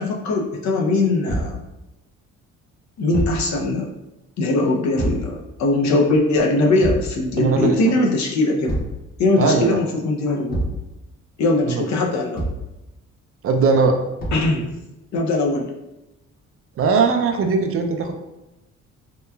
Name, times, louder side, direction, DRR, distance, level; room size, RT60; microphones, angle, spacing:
voice 1, 0.0-1.6 3.0-3.9 4.4-8.8 9.2-10.7 11.4-12.5 14.3-14.7 15.1-15.7, left 2 dB, 65° left, -1 dB, 0.6 m, -20 dB
Thump thud, 1.3-1.6 3.1-3.5 5.0-5.3 6.8-7.2 8.6-9.0 10.5-10.8 12.3-12.7 14.2-14.5, right 1 dB, 30° left, 0.8 m, -25 dB
voice 2, 7.3-8.0 9.4-9.8 11.6-11.9 13.4-14.0 16.8-18.1, right 4 dB, 50° right, 4 dB, 0.4 m, -19 dB
2.9 x 2.2 x 2.2 m, 0.96 s
cardioid pair, 90°, 30 cm